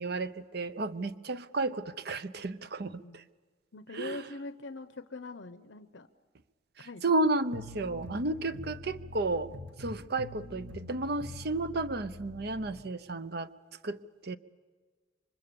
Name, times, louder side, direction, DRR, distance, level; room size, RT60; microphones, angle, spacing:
voice 1, 0.0-3.2 3.9-4.2 6.8-9.5 9.8-13.5 13.8-14.4, right 2 dB, 60° right, 12 dB, 0.8 m, -32 dB
voice 2, 3.7-6.1 6.8-7.1, left 3 dB, 80° left, 10 dB, 0.9 m, -43 dB
sound 1, 7.5-12.8, left 1 dB, 80° right, 2.2 m, -45 dB
28.5 x 24.5 x 7.1 m, 1.4 s
head